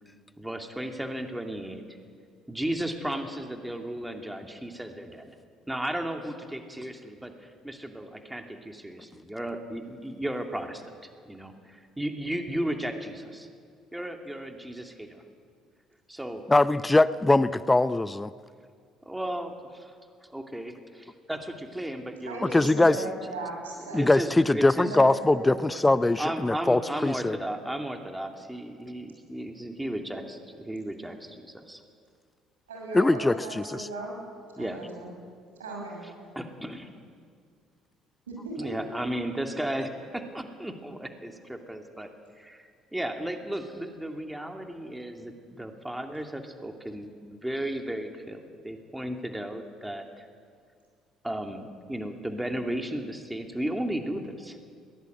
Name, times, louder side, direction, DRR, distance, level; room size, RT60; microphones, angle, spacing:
voice 1, 0.4-1.8 2.5-5.3 5.7-13.5 13.9-15.2 16.1-16.4 19.1-20.0 20.3-23.1 23.9-25.0 26.2-31.8 34.6-34.8 36.4-36.9 38.6-42.1 42.4-50.2 51.2-54.6, right 1 dB, 5° right, 4 dB, 2.5 m, -35 dB
voice 2, 16.5-18.3 22.4-23.0 23.9-27.4 32.9-33.9, left 2 dB, 15° left, 16 dB, 0.6 m, -22 dB
voice 3, 22.3-24.2 24.8-25.7 26.8-26.9 32.7-34.2 34.5-35.1 35.6-36.0 38.3-38.7, right 2 dB, 85° right, -1 dB, 6.4 m, -37 dB
21.5 x 18.5 x 8.0 m, 2.1 s
figure-of-eight pair, 55°, 0 cm